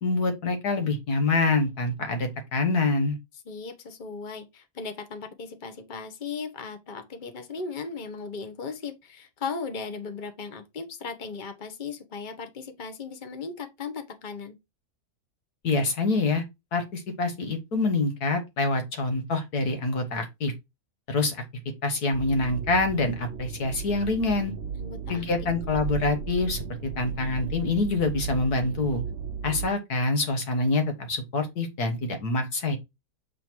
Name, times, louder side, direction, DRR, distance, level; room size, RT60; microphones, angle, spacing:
voice 1, 0.0-3.2 15.6-16.4 16.7-20.5 21.1-21.4 21.8-24.5 25.1-29.0 29.4-32.8, left 3 dB, 85° left, 2.0 m, -26 dB
voice 2, 3.4-14.6 24.8-25.2, left 5 dB, 35° left, 1.3 m, -37 dB
sound 1, 22.1-29.7, right 6 dB, 55° right, 0.9 m, -35 dB
7.8 x 3.3 x 4.6 m
omnidirectional pair, 1.6 m